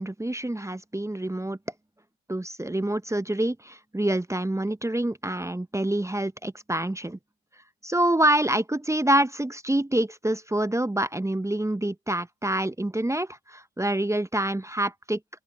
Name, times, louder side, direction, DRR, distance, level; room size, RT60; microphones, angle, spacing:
voice 1, 0.0-1.6 2.3-7.2 7.8-15.2, right 1 dB, 10° right, 1.3 m, -26 dB
figure-of-eight pair, 45°, 36 cm